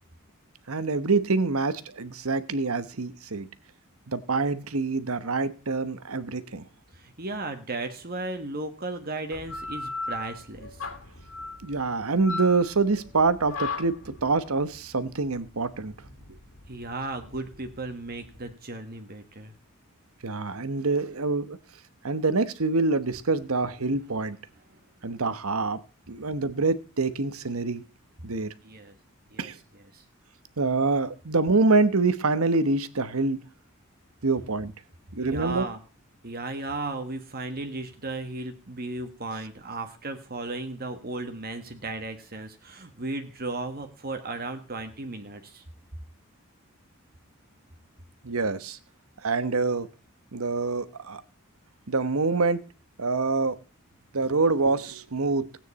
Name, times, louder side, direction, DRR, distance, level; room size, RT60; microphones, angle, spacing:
voice 1, 0.7-3.5 4.1-6.6 11.6-16.0 20.2-21.6 22.0-24.4 25.0-25.8 26.1-27.8 28.2-28.5 29.4-29.5 30.6-33.4 34.2-34.7 35.1-35.6 48.2-48.8 49.2-49.9 50.3-51.2 51.9-52.6 53.0-53.6 54.1-55.5, right 3 dB, 75° right, 1.1 m, -26 dB
voice 2, 6.9-10.9 16.7-19.5 24.7-24.8 28.6-28.9 29.3-30.0 35.2-35.8 36.2-45.6, right 2 dB, 45° right, 1.5 m, -35 dB
sound 1, 9.3-18.5, left 3 dB, 70° left, 3.0 m, -37 dB
16.5 x 9.2 x 4.2 m
head